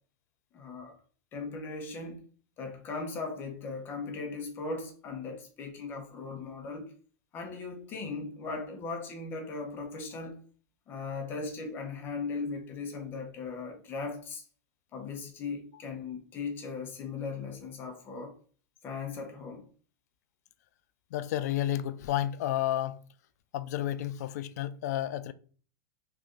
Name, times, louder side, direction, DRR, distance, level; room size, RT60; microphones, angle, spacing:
voice 1, 0.5-1.0 1.3-2.2 2.6-6.9 7.3-10.4 10.9-14.4 14.9-18.4 18.8-19.6, left 4 dB, 25° left, 0.8 m, -38 dB
voice 2, 21.1-23.0 23.5-25.3, left 12 dB, 70° left, 0.3 m, -31 dB
3.2 x 2.5 x 3.6 m
supercardioid pair, 165°, 9 cm